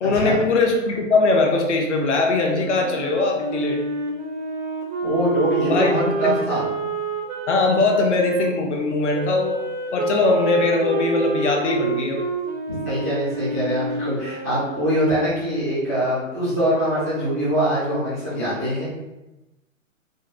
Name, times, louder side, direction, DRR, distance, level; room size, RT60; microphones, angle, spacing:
voice 1, 0.0-3.8 5.6-5.9 6.2-6.4 7.5-9.6 9.9-12.2, left 3 dB, 60° left, 1 dB, 0.7 m, -20 dB
Wind instrument woodwind instrument, 2.6-8.5 9.1-15.0, right 3 dB, 85° right, 0.9 m, -28 dB
voice 2, 5.0-6.6 12.8-18.9, right 1 dB, 15° right, -11 dB, 0.3 m, -23 dB
3.7 x 2.0 x 2.6 m, 1.0 s
hypercardioid pair, 140°, 40 cm